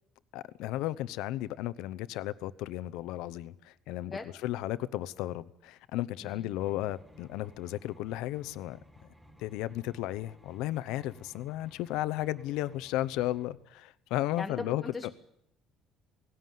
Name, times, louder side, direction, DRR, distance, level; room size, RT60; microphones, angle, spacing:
voice 1, 0.3-8.8 9.4-15.1, left 15 dB, 85° left, 16 dB, 0.8 m, -34 dB
sound 1, 6.6-13.4, equal, 5° right, 2.8 m, -57 dB
voice 2, 14.4-15.1, left 3 dB, 10° left, 2 dB, 1.2 m, -39 dB
18.5 x 17.0 x 9.3 m, 0.79 s
cardioid pair, 170°, 0 cm